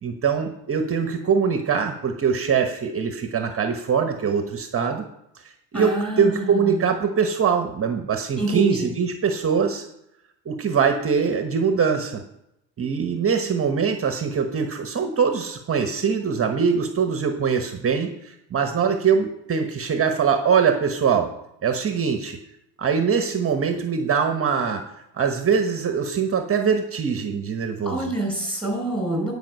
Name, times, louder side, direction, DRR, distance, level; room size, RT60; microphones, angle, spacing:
voice 1, 0.0-5.0 5.7-9.9 10.4-12.2 12.8-21.3 21.6-22.4 22.8-24.8 25.1-28.1, right 6 dB, 30° right, 6 dB, 1.1 m, -23 dB
voice 2, 5.7-6.9 8.4-8.8 27.8-29.3, right 1 dB, ahead, 1 dB, 4.4 m, -27 dB
10.5 x 5.2 x 6.4 m, 0.81 s
supercardioid pair, 100°, 44 cm